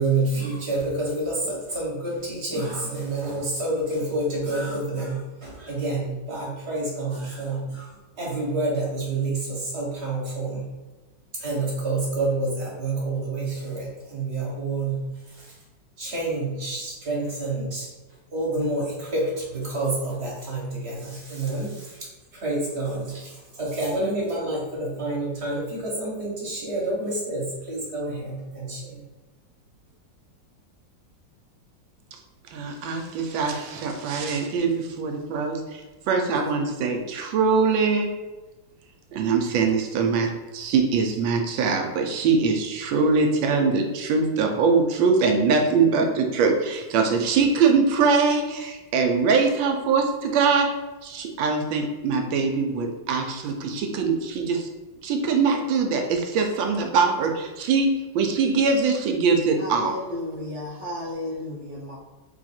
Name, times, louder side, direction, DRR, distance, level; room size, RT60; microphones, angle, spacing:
voice 1, 0.0-10.7 11.3-15.6 16.0-17.9 18.3-29.0, right 2 dB, 40° right, -4 dB, 1.3 m, -28 dB
voice 2, 32.5-38.1 39.1-50.7 51.0-54.7 55.0-57.9 58.1-59.9, right 4 dB, 85° right, 3 dB, 1.4 m, -22 dB
voice 3, 59.6-62.0, left 1 dB, 20° left, -9 dB, 0.8 m, -33 dB
3.9 x 2.6 x 4.2 m, 1.2 s
omnidirectional pair, 2.0 m